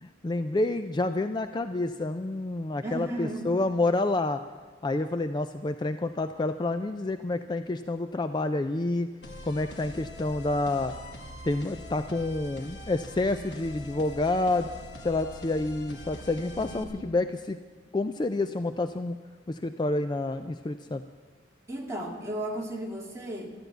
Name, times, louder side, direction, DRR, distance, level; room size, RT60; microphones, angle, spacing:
voice 1, 0.0-4.4 4.8-9.1 9.4-10.9 11.4-14.7 15.0-17.6 17.9-19.2 19.5-21.0, left 2 dB, 25° left, 9 dB, 0.4 m, -28 dB
voice 2, 2.8-3.5 16.6-17.1 21.7-23.5, right 1 dB, 15° right, -1 dB, 2.0 m, -35 dB
sound 1, 9.2-16.8, left 1 dB, 70° left, 1.6 m, -43 dB
13.0 x 10.5 x 7.9 m, 1.4 s
head